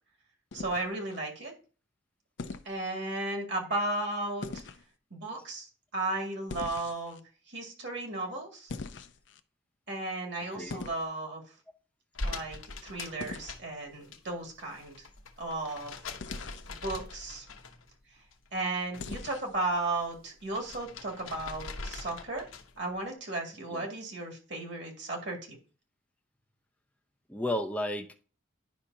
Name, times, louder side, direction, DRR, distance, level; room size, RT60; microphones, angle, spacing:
sound 1, 0.5-1.2 2.4-2.7 4.4-4.8 6.5-7.2 8.7-9.4 10.7-11.1 13.2-13.5 16.2-16.7 19.0-19.6, left 3 dB, 60° left, 0.5 m, -41 dB
voice 1, 0.5-1.5 2.7-4.5 5.1-5.7 5.9-7.2 7.5-8.7 9.9-11.4 12.2-15.1 15.4-15.9 16.7-17.5 18.5-22.5 22.8-25.6, right 2 dB, 55° right, 2.1 m, -35 dB
voice 2, 10.5-10.8 23.7-23.9 27.3-28.2, left 1 dB, 5° left, 0.5 m, -34 dB
sound 2, 12.1-14.2 14.5-18.0 18.3-19.3 19.6-22.8, left 3 dB, 75° left, 0.9 m, -42 dB
10.0 x 5.7 x 2.7 m
head